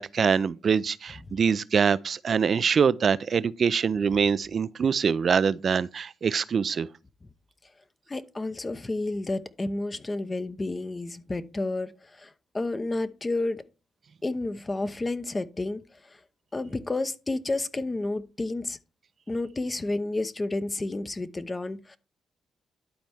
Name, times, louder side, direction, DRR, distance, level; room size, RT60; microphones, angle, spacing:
voice 1, 0.0-6.9, right 6 dB, 55° right, 0.4 m, -24 dB
voice 2, 8.1-13.6 14.2-16.2 16.5-18.8 19.3-22.0, left 2 dB, 30° left, 0.8 m, -31 dB
12.0 x 4.3 x 3.5 m
supercardioid pair, 50°, 0 cm